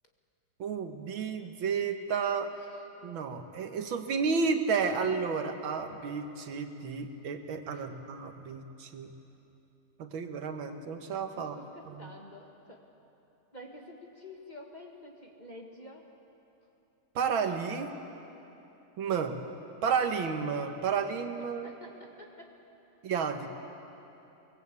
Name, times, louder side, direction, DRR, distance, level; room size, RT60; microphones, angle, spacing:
voice 1, 0.6-2.5 3.0-9.1 10.0-11.6 17.2-17.9 19.0-19.4 19.8-21.7 23.0-23.5, right 5 dB, 75° right, 6 dB, 2.0 m, -31 dB
voice 2, 2.5-2.9 7.7-7.9 11.4-12.8 13.5-16.1 21.6-22.6, left 1 dB, 20° left, 1 dB, 1.7 m, -49 dB
23.0 x 20.5 x 8.3 m, 3.0 s
omnidirectional pair, 2.2 m